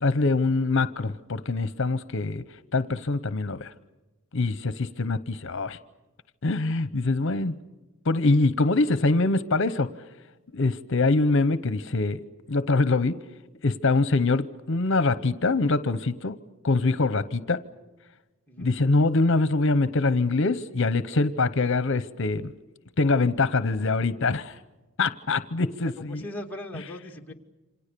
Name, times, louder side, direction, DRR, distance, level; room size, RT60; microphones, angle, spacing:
voice 1, 0.0-2.4 2.7-3.7 4.3-5.8 6.4-7.6 8.0-9.9 10.5-12.2 12.5-13.1 13.6-16.4 16.6-17.6 18.6-22.5 23.0-24.6 25.0-26.2 26.7-26.8, left 3 dB, 65° left, 14 dB, 0.9 m, -24 dB
voice 2, 25.8-27.3, left 1 dB, 10° left, 1 dB, 2.5 m, -39 dB
28.5 x 26.5 x 6.8 m, 1.1 s
head